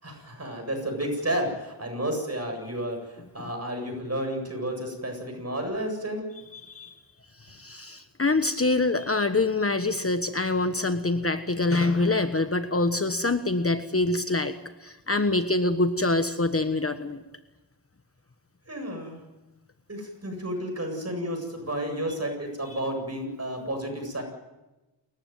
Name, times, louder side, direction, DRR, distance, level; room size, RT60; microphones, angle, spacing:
voice 1, 0.0-6.3 18.7-19.2 19.9-24.2, right 1 dB, 35° right, 3 dB, 8.0 m, -31 dB
voice 2, 6.5-6.9 7.4-14.5 14.8-17.2, left 2 dB, 30° left, 9 dB, 1.3 m, -25 dB
29.0 x 14.5 x 9.4 m, 1.1 s
wide cardioid pair, 75°, 42 cm